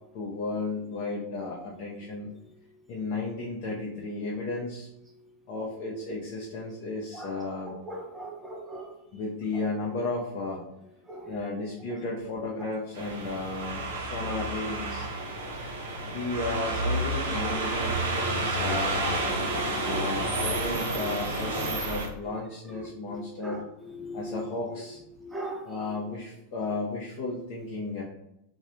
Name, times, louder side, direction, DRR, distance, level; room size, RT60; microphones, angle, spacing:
voice 1, 0.1-2.3 2.9-4.9 5.5-7.8 9.1-10.6 11.2-15.1 16.1-19.0 19.8-23.6 24.1-25.0 25.6-28.0, left 3 dB, 45° left, -4 dB, 0.6 m, -34 dB
voice 2, 7.9-8.9 11.1-11.2 17.5-17.6 18.7-18.8 19.5-20.0 23.1-23.6 24.0-24.3 25.2-25.6, right 1 dB, 10° right, 1 dB, 0.5 m, -38 dB
sound 1, 12.9-22.1, right 2 dB, 60° right, 0.7 m, -30 dB
3.1 x 2.7 x 2.6 m, 0.82 s
figure-of-eight pair, 90°, 0 cm